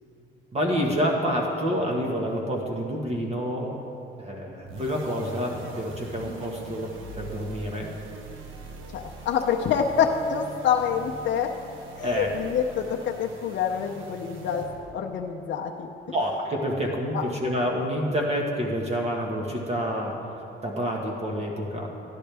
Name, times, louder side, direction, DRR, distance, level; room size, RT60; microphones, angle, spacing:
voice 1, 0.5-3.8 4.2-7.9 12.0-12.3 16.1-20.2 20.6-21.9, equal, 30° right, 0 dB, 1.4 m, -28 dB
sound 1, 4.6-15.0, right 2 dB, 85° right, 1.1 m, -42 dB
voice 2, 8.9-11.5 12.0-15.9 17.1-17.2, left 7 dB, 65° left, 1 dB, 0.6 m, -26 dB
13.5 x 10.5 x 3.4 m, 2.7 s
cardioid pair, 90°, 20 cm